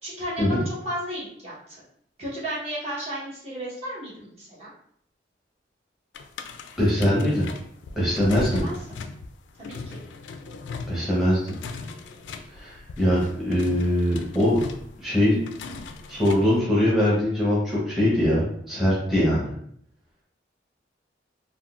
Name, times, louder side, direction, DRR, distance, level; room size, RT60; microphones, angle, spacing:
voice 1, 0.0-1.8 2.2-4.7 8.3-9.0 9.6-10.0, equal, 35° right, -7 dB, 1.0 m, -34 dB
sound 1, 6.1-16.6, left 3 dB, 90° left, 0.3 m, -39 dB
voice 2, 6.8-7.4 8.0-8.6 10.9-11.4 12.5-14.6 15.0-15.4 16.1-19.5, left 1 dB, ahead, -8 dB, 0.8 m, -22 dB
3.6 x 2.2 x 2.3 m, 0.67 s
head